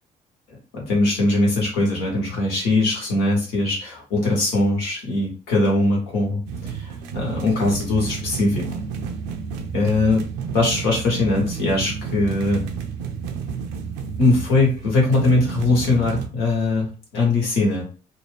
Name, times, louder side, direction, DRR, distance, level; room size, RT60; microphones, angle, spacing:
voice 1, 0.7-6.4 7.1-8.7 9.7-10.2 10.5-12.6 14.2-17.9, left 2 dB, 80° left, -2 dB, 1.1 m, -21 dB
sound 1, 6.5-16.3, right 6 dB, 80° right, 0.4 m, -31 dB
2.5 x 2.2 x 3.3 m, 0.37 s
hypercardioid pair, 45°, 21 cm